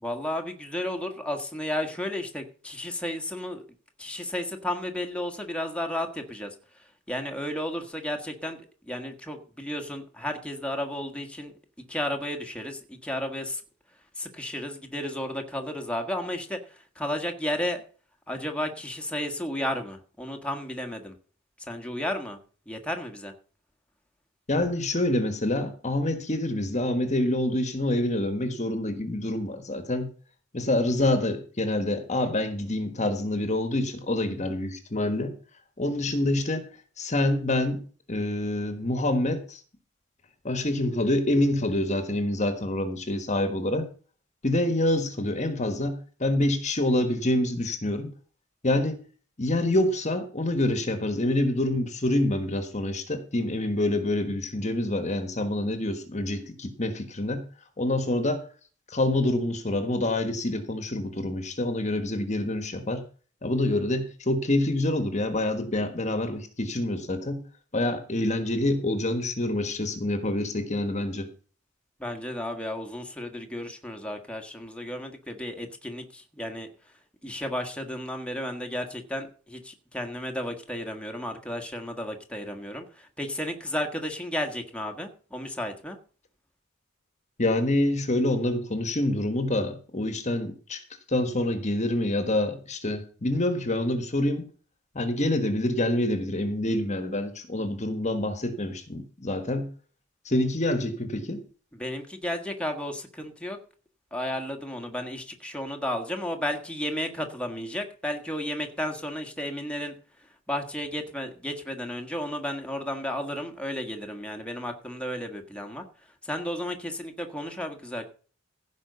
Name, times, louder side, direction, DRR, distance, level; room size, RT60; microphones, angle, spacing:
voice 1, 0.0-3.6 4.0-6.5 7.1-8.6 8.8-11.5 11.9-13.6 14.2-17.8 18.3-21.1 21.7-22.4 22.7-23.3 72.0-76.7 77.2-86.0 101.7-103.6 104.1-109.9 110.5-115.8 116.2-118.1, left 1 dB, 5° left, 4 dB, 1.6 m, -33 dB
voice 2, 24.5-30.1 30.5-35.3 35.8-36.7 37.0-37.8 38.1-39.6 40.4-43.9 44.4-48.1 48.6-49.0 49.4-57.5 57.8-58.4 58.9-63.0 63.4-67.4 67.7-71.3 87.4-90.8 91.1-94.5 94.9-99.7 100.2-101.4, left 1 dB, 35° left, 9 dB, 1.4 m, -26 dB
15.5 x 5.3 x 6.7 m, 0.40 s
head